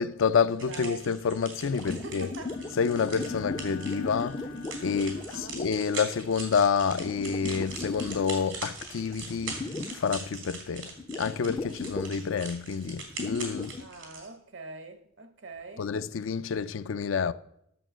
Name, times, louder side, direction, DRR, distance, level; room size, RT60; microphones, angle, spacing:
voice 1, 0.0-2.3 2.8-4.4 4.8-9.6 9.9-13.8 15.8-17.3, left 6 dB, 80° left, 0.4 m, -28 dB
voice 2, 0.6-1.0 1.9-2.6 5.1-5.7 13.8-15.9, right 3 dB, 70° right, 1.0 m, -44 dB
sound 1, 0.6-14.3, right 4 dB, 85° right, 3.2 m, -42 dB
sound 2, 1.6-6.2 7.0-8.5 8.8-10.1 10.4-10.5 11.0-12.3 13.1-13.8, left 3 dB, 25° left, 0.4 m, -37 dB
Bowed string instrument, 2.4-5.6, right 1 dB, 65° left, 0.9 m, -44 dB
11.0 x 6.8 x 6.2 m
head